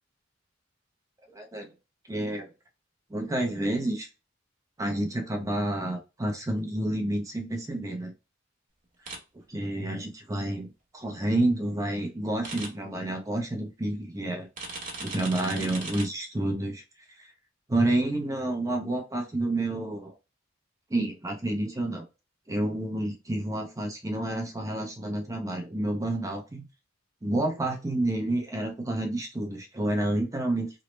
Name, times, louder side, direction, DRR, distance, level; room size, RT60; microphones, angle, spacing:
voice 1, 1.3-1.7 2.1-2.5 3.1-4.1 4.8-8.1 9.5-14.5 15.0-16.8 17.2-17.3 17.7-20.1 20.9-22.1 22.5-26.6 27.2-30.8, right 1 dB, 15° right, 2 dB, 0.4 m, -29 dB
sound 1, 9.1-9.2 12.4-12.7 14.6-16.0, right 3 dB, 40° right, 0.9 m, -37 dB
3.0 x 2.0 x 3.1 m, 0.28 s
head